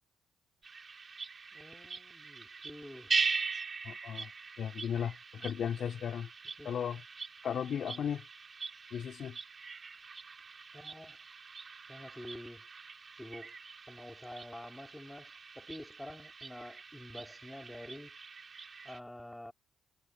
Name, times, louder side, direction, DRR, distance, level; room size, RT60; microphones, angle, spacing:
sound 1, 0.6-19.0, right 5 dB, 35° right, 5.2 m, -41 dB
voice 1, 1.5-3.1 6.6-6.7 10.7-11.2 11.9-12.6 13.2-13.5 13.9-18.1 18.8-19.5, left 1 dB, 5° left, 4.1 m, -48 dB
voice 2, 3.8-4.3 4.6-6.3 6.6-7.0 7.4-8.2 8.9-9.4, left 8 dB, 60° left, 3.1 m, -36 dB
cardioid pair, 90°, 0 cm